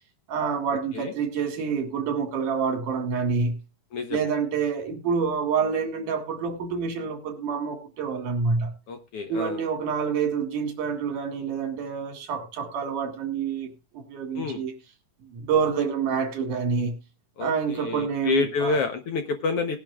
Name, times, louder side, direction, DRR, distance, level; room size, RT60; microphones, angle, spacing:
voice 1, 0.3-3.6 4.1-8.7 9.3-14.7 15.3-17.0 17.4-18.8, right 6 dB, 80° right, 3.5 m, -27 dB
voice 2, 8.9-9.7 14.3-14.6 17.4-19.8, left 4 dB, 60° left, 1.7 m, -28 dB
19.5 x 10.5 x 2.4 m
omnidirectional pair, 3.6 m